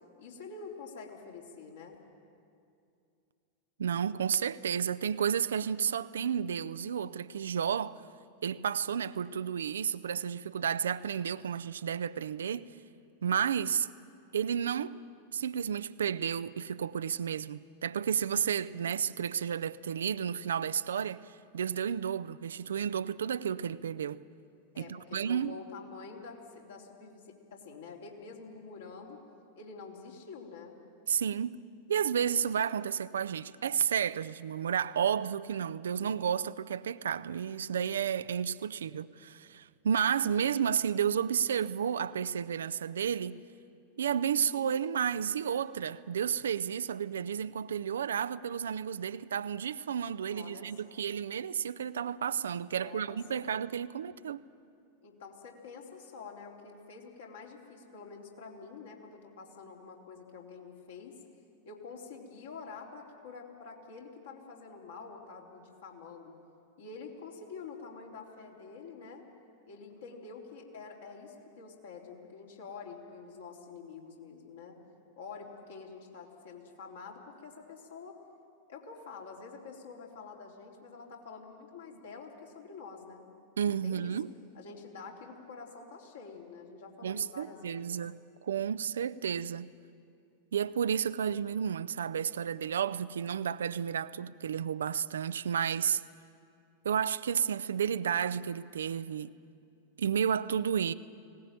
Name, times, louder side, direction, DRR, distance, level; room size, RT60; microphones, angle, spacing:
voice 1, 0.2-2.0 24.7-29.2 29.6-30.7 50.3-51.1 52.8-53.5 55.0-61.2 61.7-66.3 66.8-69.2 69.7-74.8 75.2-78.2 78.7-83.3 83.8-84.1 84.5-87.9, left 4 dB, 65° left, 3.7 m, -47 dB
voice 2, 3.8-8.0 8.4-12.7 13.2-13.9 14.3-14.9 15.3-24.2 24.8-25.6 31.1-31.6 31.9-43.4 44.0-54.4 83.6-84.3 87.0-89.7 90.5-96.0 96.8-99.3 100.0-100.9, right 8 dB, 65° right, 0.5 m, -32 dB
20.0 x 18.5 x 9.0 m
figure-of-eight pair, 90°, 0 cm